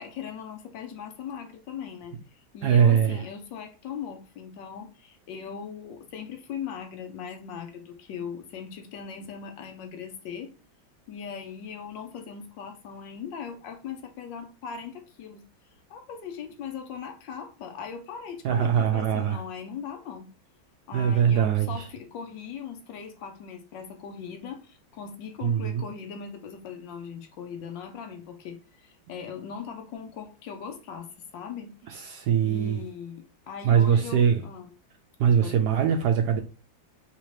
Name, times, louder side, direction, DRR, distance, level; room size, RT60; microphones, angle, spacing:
voice 1, 0.0-2.1 2.5-10.5 11.1-15.4 15.9-20.3 20.9-32.1 32.4-34.7 35.4-35.6, left 7 dB, 75° left, 1.3 m, -39 dB
voice 2, 2.6-3.2 18.4-19.4 20.9-21.9 25.4-25.8 31.9-32.8 33.6-34.4 35.2-36.4, right 8 dB, 70° right, 1.0 m, -22 dB
4.0 x 2.8 x 3.1 m
omnidirectional pair, 2.1 m